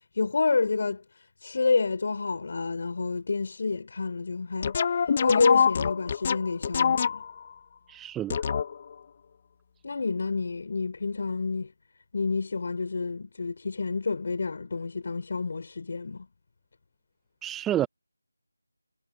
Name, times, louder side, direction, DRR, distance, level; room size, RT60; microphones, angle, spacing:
voice 1, 0.2-1.0 1.4-4.8 5.2-7.2 9.8-11.7 12.1-16.3, left 4 dB, 45° left, 6.0 m, -28 dB
sound 1, 4.6-7.5 8.3-8.9, left 6 dB, 30° left, 1.3 m, -25 dB
voice 2, 7.9-8.4 17.4-17.9, right 12 dB, 5° right, 1.0 m, -29 dB
figure-of-eight pair, 170°, 0 cm